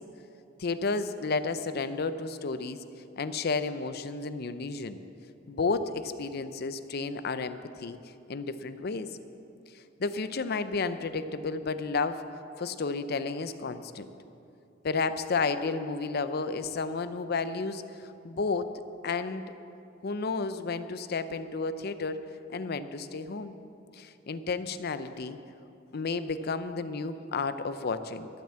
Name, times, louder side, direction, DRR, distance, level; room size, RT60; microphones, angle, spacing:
voice 1, 0.6-2.8 3.2-5.0 5.5-8.0 8.3-9.1 10.0-12.2 12.6-14.1 14.8-18.7 19.0-19.4 20.0-22.2 22.5-23.6 23.9-25.4 25.9-28.3, left 4 dB, 55° left, 11 dB, 0.6 m, -32 dB
13.0 x 9.2 x 7.4 m, 2.8 s
head